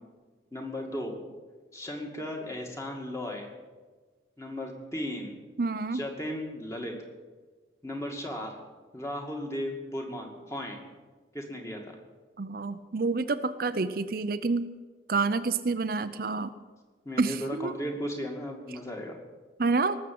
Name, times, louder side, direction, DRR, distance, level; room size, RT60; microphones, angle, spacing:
voice 1, 0.5-1.2 1.7-3.5 4.4-5.4 5.9-7.0 7.8-8.6 8.9-10.8 11.3-11.9 17.0-19.2, left 1 dB, 15° left, 1 dB, 2.2 m, -36 dB
voice 2, 5.6-6.0 12.4-14.7 15.1-16.5 17.2-17.8 19.6-20.0, right 3 dB, 50° right, 10 dB, 0.6 m, -28 dB
19.0 x 7.4 x 9.4 m, 1.4 s
head